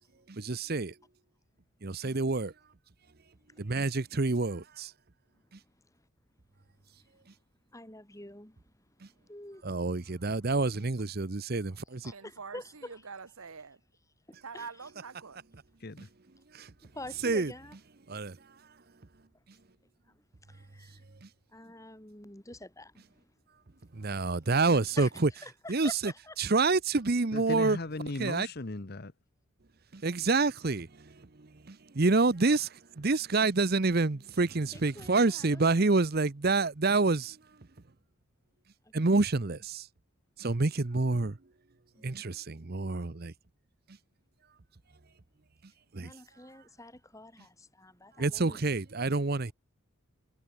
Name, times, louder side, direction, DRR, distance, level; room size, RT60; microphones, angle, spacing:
voice 1, 0.3-0.9 1.8-2.5 3.6-4.9 9.6-12.1 16.5-16.7 17.2-17.5 18.1-18.4 21.2-21.3 24.0-25.3 25.7-26.1 26.4-27.8 28.2-28.5 29.9-37.4 38.9-39.9 40.4-41.4 42.0-43.3 45.9-46.1 48.2-49.5, right 3 dB, 45° right, 0.8 m, -28 dB
voice 2, 5.7-6.1 7.0-7.4 7.7-9.7 12.0-13.0 14.5-14.9 16.8-17.8 20.1-21.0 21.5-23.3 25.0-25.1 25.4-26.3 34.7-35.8 38.8-38.9 41.9-42.3 46.0-48.6, left 1 dB, 15° left, 3.9 m, -48 dB
voice 3, 12.1-12.6 12.9-13.8 14.4-15.4, right 5 dB, 80° right, 1.2 m, -44 dB
voice 4, 27.3-29.1, left 2 dB, 45° left, 1.0 m, -37 dB
head